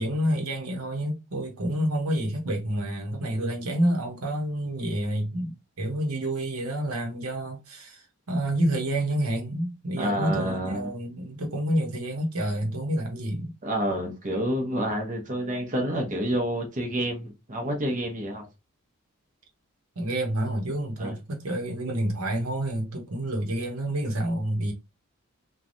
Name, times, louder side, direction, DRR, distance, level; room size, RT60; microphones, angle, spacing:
voice 1, 0.0-13.5 20.0-24.7, right 1 dB, 90° right, 0.9 m, -28 dB
voice 2, 10.0-10.9 13.6-18.5 21.0-21.1, right 1 dB, 35° right, 0.8 m, -28 dB
3.2 x 2.2 x 2.6 m
head